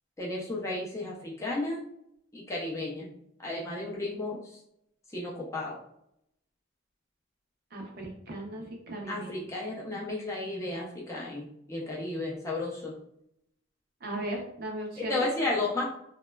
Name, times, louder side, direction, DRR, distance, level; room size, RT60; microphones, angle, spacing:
voice 1, 0.2-1.8 2.3-3.1 3.4-4.4 5.1-5.8 9.1-12.9 15.0-15.8, left 2 dB, 15° left, -4 dB, 0.4 m, -33 dB
voice 2, 7.7-9.4 14.0-15.3, right 1 dB, 45° right, 0 dB, 0.5 m, -37 dB
2.9 x 2.2 x 2.2 m, 0.76 s
head